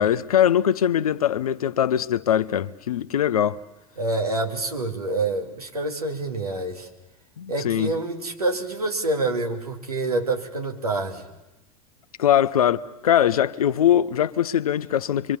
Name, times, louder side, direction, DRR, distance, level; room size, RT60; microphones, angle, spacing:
voice 1, 0.0-3.6 7.4-7.9 12.2-15.4, left 10 dB, 75° left, 0.9 m, -21 dB
voice 2, 4.0-6.9 7.5-11.3, right 2 dB, 85° right, 2.7 m, -27 dB
26.5 x 23.5 x 7.3 m
figure-of-eight pair, 85°, 19 cm